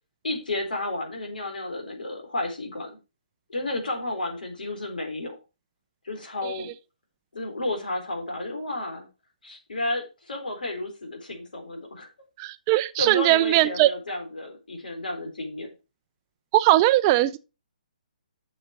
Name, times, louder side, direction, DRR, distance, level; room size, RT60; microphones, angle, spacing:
voice 1, 0.2-3.0 3.5-5.4 6.0-6.7 7.3-9.1 9.4-12.1 13.0-15.7, left 2 dB, 85° left, 3.6 m, -32 dB
voice 2, 12.4-13.9 16.5-17.4, right 16 dB, 25° right, 0.4 m, -20 dB
7.4 x 6.9 x 4.6 m
hypercardioid pair, 150°, 4 cm